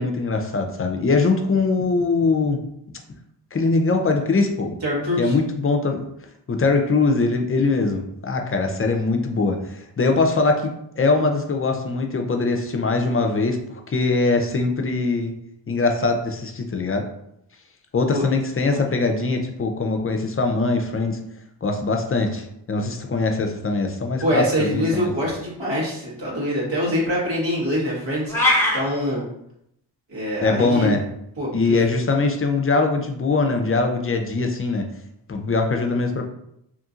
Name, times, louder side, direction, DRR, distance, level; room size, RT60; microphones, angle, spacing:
voice 1, 0.0-2.6 3.5-4.7 5.2-6.0 6.5-13.6 13.9-15.3 15.7-17.0 17.9-21.2 21.6-25.1 30.4-31.0 31.5-34.9 35.3-36.2, left 3 dB, 30° left, 4 dB, 0.5 m, -22 dB
voice 2, 4.8-5.3 18.1-18.2 18.7-18.8 24.2-29.2 30.1-30.9 31.4-31.8, equal, 70° right, -5 dB, 1.4 m, -24 dB
sound 1, 28.3-28.8, left 1 dB, 5° left, 1.0 m, -18 dB
2.8 x 2.6 x 2.4 m, 0.76 s
cardioid pair, 50°, 45 cm